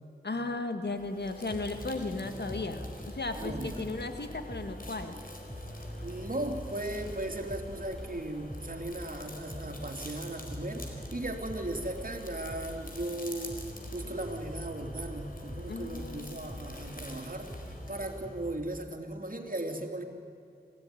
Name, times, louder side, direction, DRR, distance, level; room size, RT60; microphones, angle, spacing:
voice 1, 0.2-5.2 15.7-16.5, left 3 dB, 80° left, 7 dB, 1.9 m, -35 dB
sound 1, 0.8-18.7, left 2 dB, 55° left, 4.4 m, -48 dB
sound 2, 1.5-18.5, equal, 5° left, 6.5 m, -44 dB
voice 2, 3.4-3.9 6.0-13.6 13.9-17.5 17.9-20.0, right 1 dB, 55° right, 3 dB, 3.1 m, -37 dB
26.0 x 16.5 x 9.9 m, 2.4 s
wide cardioid pair, 40°, 17 cm